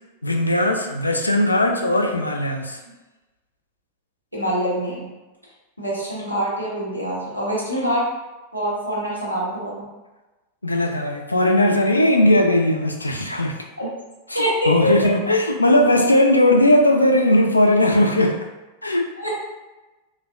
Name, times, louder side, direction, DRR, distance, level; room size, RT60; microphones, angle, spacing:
voice 1, 0.2-2.8 10.6-13.6 14.3-18.4 18.8-19.1, left 1 dB, 80° left, 3 dB, 0.3 m, -18 dB
voice 2, 4.3-5.1 5.8-8.1 8.5-9.9 13.8-13.9 14.3-14.8 19.2-19.4, equal, 90° right, -6 dB, 0.9 m, -25 dB
3.3 x 2.2 x 2.4 m, 1.1 s
figure-of-eight pair, 90°, 0 cm